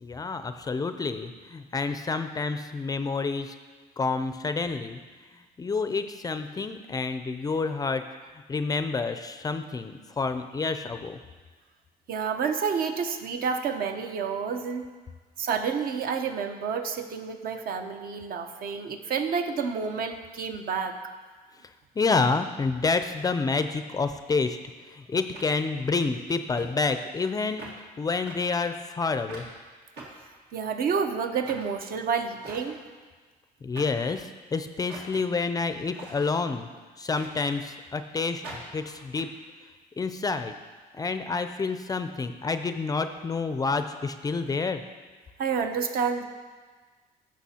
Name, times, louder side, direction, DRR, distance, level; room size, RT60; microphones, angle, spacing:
voice 1, 0.0-3.6 4.0-5.0 5.6-11.2 22.0-24.6 24.9-27.6 28.0-29.5 33.6-36.7 37.0-39.3 40.0-40.5 40.9-44.8, left 4 dB, 20° left, 9 dB, 0.4 m, -28 dB
voice 2, 12.1-14.9 15.4-21.0 30.5-32.8 45.4-46.2, right 6 dB, 60° right, 6 dB, 0.8 m, -29 dB
sound 1, 25.3-26.1 26.6-26.7 27.0-27.3 27.6-27.8 28.3-28.4 29.3-29.5 30.0-30.8 31.4-31.7 32.4-32.9 33.7-34.1 34.9-35.3 35.9-36.3 37.2-37.8 38.4-39.2, right 2 dB, 80° right, 1.8 m, -44 dB
14.0 x 6.0 x 2.8 m, 1.4 s
cardioid pair, 110°, 17 cm